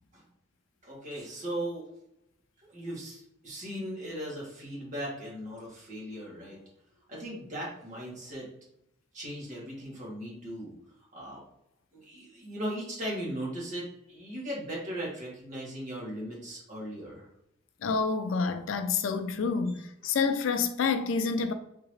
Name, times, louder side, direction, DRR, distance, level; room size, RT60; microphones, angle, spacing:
voice 1, 0.8-1.9 2.6-6.6 7.1-8.5 9.1-10.7 11.1-11.4 11.9-17.3, right 1 dB, 40° right, 1.5 m, -38 dB
voice 2, 17.8-21.5, left 5 dB, 75° left, 0.4 m, -28 dB
3.7 x 2.8 x 3.1 m
head